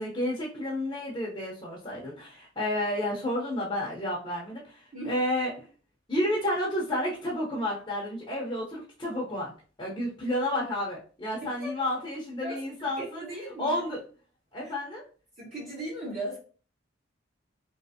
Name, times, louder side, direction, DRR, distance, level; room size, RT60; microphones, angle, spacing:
voice 1, 0.0-5.6 6.1-9.5 9.8-13.2 13.6-14.0 14.5-15.0, left 1 dB, 20° left, -4 dB, 0.8 m, -31 dB
voice 2, 13.0-13.8 14.6-14.7 15.4-16.4, right 1 dB, 35° right, -8 dB, 1.2 m, -37 dB
3.2 x 3.0 x 2.7 m, 0.40 s
head